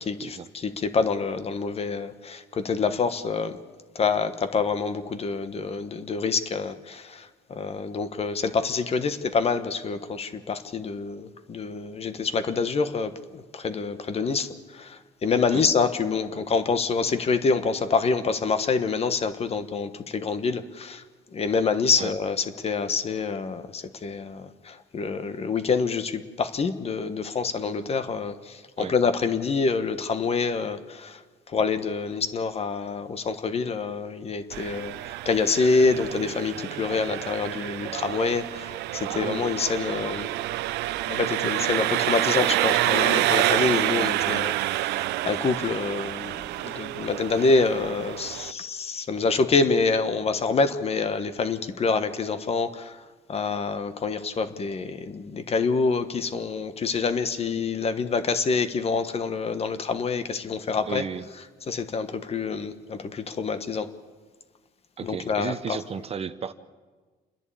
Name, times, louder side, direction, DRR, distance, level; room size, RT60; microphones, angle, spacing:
voice 1, 0.0-3.6 3.9-21.0 21.3-31.2 31.5-40.3 41.1-53.0 53.3-61.0 61.7-63.9 65.0-65.8, left 4 dB, 35° left, 10 dB, 1.3 m, -26 dB
Engine, 34.5-48.5, right 16 dB, 80° right, 0.5 m, -28 dB
voice 2, 60.9-61.2 65.0-66.5, right 7 dB, 35° right, 12 dB, 0.8 m, -33 dB
28.5 x 10.5 x 8.5 m, 1.4 s
cardioid pair, 110°, 17 cm